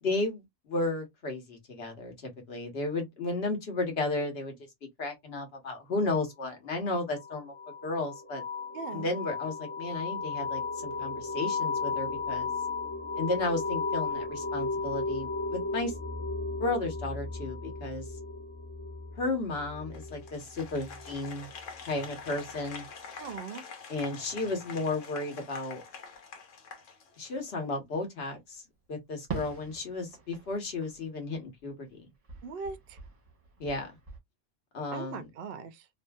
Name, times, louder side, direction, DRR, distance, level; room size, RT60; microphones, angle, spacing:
voice 1, 0.0-4.5 5.0-7.5 7.8-8.4 8.9-12.5 13.2-15.9 16.6-18.1 19.2-21.5 21.9-22.8 23.9-25.8 27.2-28.6 28.9-32.0 33.6-33.9 34.7-35.3, left 2 dB, 55° left, 1.3 m, -33 dB
sound 1, 7.1-21.6, left 4 dB, 25° left, 0.9 m, -35 dB
voice 2, 8.7-9.1 23.2-23.6 32.4-33.0 34.9-35.9, right 5 dB, 60° right, 0.6 m, -40 dB
Applause, 19.9-27.5, left 5 dB, 80° left, 1.2 m, -46 dB
Fireworks, 29.3-31.9 32.2-34.2, right 5 dB, 30° right, 1.0 m, -44 dB
2.7 x 2.6 x 2.2 m
omnidirectional pair, 1.3 m